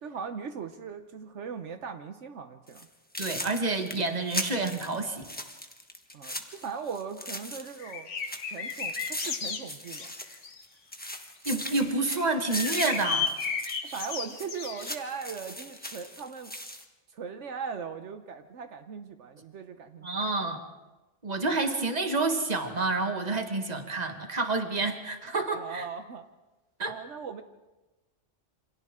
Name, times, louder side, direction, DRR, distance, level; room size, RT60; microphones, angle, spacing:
voice 1, 0.0-2.9 6.1-8.1 8.5-10.1 13.9-16.5 17.1-20.1 25.5-26.3 26.8-27.4, right 6 dB, 75° right, 8 dB, 1.2 m, -39 dB
sound 1, 2.7-2.8 3.1-7.9 8.2-10.7 10.9-16.8, left 1 dB, 10° left, 1.4 m, -39 dB
voice 2, 3.2-5.2 11.4-13.3 20.0-20.6 21.2-25.9 26.8-26.9, right 3 dB, 35° right, 5 dB, 1.7 m, -29 dB
sound 2, 7.8-10.6 11.6-15.2, left 6 dB, 85° left, 1.6 m, -34 dB
28.0 x 25.5 x 3.7 m, 1.1 s
omnidirectional pair, 1.2 m